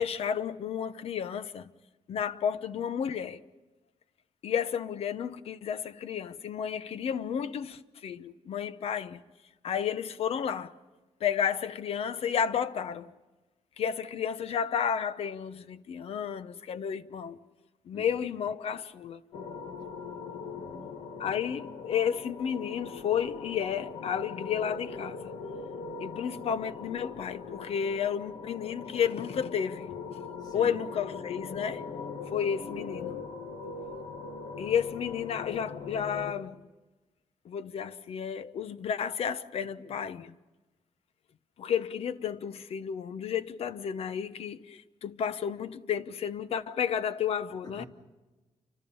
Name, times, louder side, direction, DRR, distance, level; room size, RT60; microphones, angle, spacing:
voice 1, 0.0-1.7 2.1-3.4 4.4-9.2 9.6-10.7 11.2-13.1 13.8-17.4 17.9-19.2 21.2-25.3 26.0-30.0 30.5-31.8 32.3-33.2 34.6-36.7 37.4-40.3 41.6-47.8, left 8 dB, 60° left, 0.9 m, -32 dB
sound 1, 19.3-36.3, left 5 dB, 85° left, 2.2 m, -41 dB
voice 2, 20.5-20.9 30.3-30.8 39.8-39.9 47.6-47.9, left 2 dB, 35° left, 3.6 m, -47 dB
29.0 x 25.0 x 5.6 m
wide cardioid pair, 175°, 11 cm